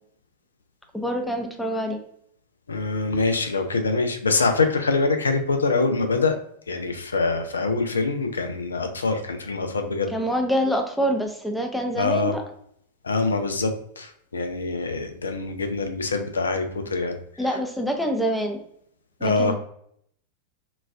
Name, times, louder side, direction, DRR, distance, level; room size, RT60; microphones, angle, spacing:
voice 1, 0.9-2.0 10.1-12.4 17.4-18.6 19.2-19.5, equal, ahead, 3 dB, 0.5 m, -26 dB
voice 2, 2.7-6.4 6.7-10.1 12.0-12.3 13.0-17.1 19.2-19.5, left 3 dB, 75° left, 6 dB, 0.4 m, -24 dB
3.9 x 2.4 x 2.2 m, 0.68 s
figure-of-eight pair, 90°, 0 cm